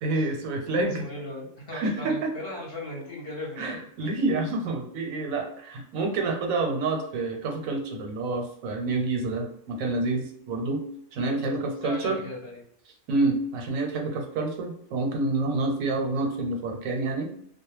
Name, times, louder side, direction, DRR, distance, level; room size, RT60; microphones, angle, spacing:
voice 1, 0.0-1.0 1.7-2.3 3.6-10.8 11.1-12.2 13.1-17.3, right 2 dB, 85° right, 2 dB, 1.0 m, -28 dB
voice 2, 0.7-3.9 11.6-12.6 14.1-14.2, left 1 dB, 55° left, -3 dB, 0.8 m, -38 dB
2.2 x 2.1 x 3.0 m, 0.69 s
omnidirectional pair, 1.4 m